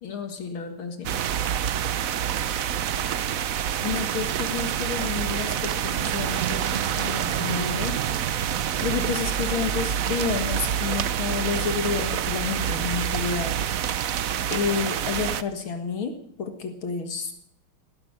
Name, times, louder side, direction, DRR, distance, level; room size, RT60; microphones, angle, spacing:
voice 1, 0.0-1.2 3.8-8.1 8.8-13.6 14.5-17.3, left 6 dB, 75° left, 5 dB, 2.5 m, -30 dB
sound 1, 1.0-15.4, right 9 dB, 65° right, 0.8 m, -27 dB
16.5 x 11.0 x 7.5 m, 0.67 s
omnidirectional pair, 2.3 m